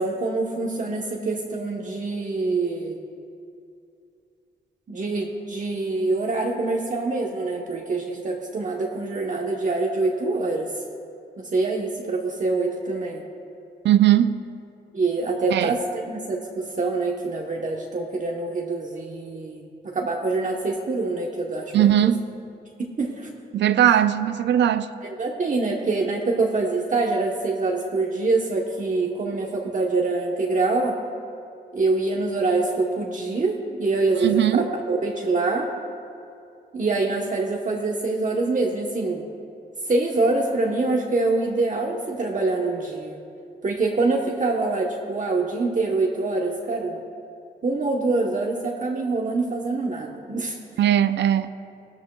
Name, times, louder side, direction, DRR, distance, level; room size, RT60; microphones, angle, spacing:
voice 1, 0.0-3.0 4.9-10.8 11.4-13.2 14.9-21.7 22.0-22.2 22.8-23.3 25.0-31.0 31.7-35.7 36.7-39.2 39.8-43.2 43.6-47.0 47.6-50.6, right 3 dB, 45° right, 1.1 m, -25 dB
voice 2, 13.8-14.3 15.5-15.8 21.7-22.2 23.5-24.9 34.2-34.7 50.8-51.5, right 11 dB, 80° right, 0.5 m, -19 dB
15.5 x 13.0 x 2.3 m
cardioid pair, 65°, 18 cm